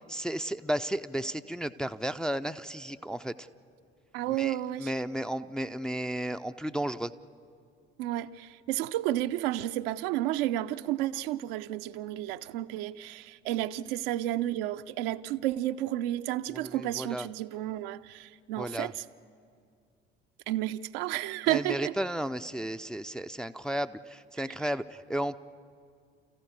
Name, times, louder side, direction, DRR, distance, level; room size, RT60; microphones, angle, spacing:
voice 1, 0.1-3.5 4.3-7.1 16.5-17.3 18.6-18.9 21.5-25.4, right 1 dB, ahead, 0.5 m, -33 dB
voice 2, 4.1-4.9 8.0-19.0 20.5-21.9, right 14 dB, 60° right, 0.6 m, -31 dB
29.0 x 15.0 x 8.3 m
figure-of-eight pair, 50°, 32 cm